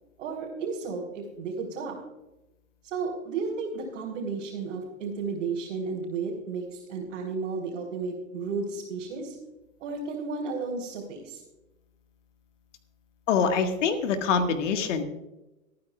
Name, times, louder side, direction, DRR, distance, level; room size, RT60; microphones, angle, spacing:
voice 1, 0.2-2.0 2.9-9.3 9.8-11.4, right 4 dB, 55° right, -5 dB, 3.9 m, -33 dB
voice 2, 13.3-15.0, left 6 dB, 55° left, 7 dB, 1.8 m, -25 dB
24.0 x 9.5 x 2.4 m, 0.98 s
figure-of-eight pair, 110°, 43 cm